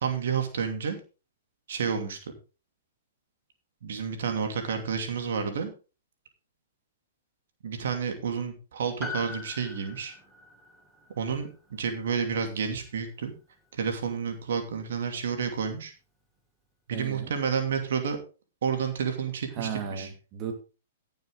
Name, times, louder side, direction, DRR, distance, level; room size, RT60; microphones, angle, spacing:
voice 1, 0.0-1.0 1.7-2.3 3.8-5.7 7.6-10.1 11.2-13.3 13.7-15.9 16.9-18.2 18.6-20.1, right 6 dB, 65° right, 5 dB, 2.8 m, -30 dB
Piano, 9.0-13.6 13.9-14.0, left 3 dB, 5° right, 3.1 m, -43 dB
voice 2, 16.9-17.3 19.5-20.5, right 7 dB, 35° right, 4 dB, 2.5 m, -35 dB
16.0 x 7.3 x 3.9 m, 0.33 s
hypercardioid pair, 115°, 0 cm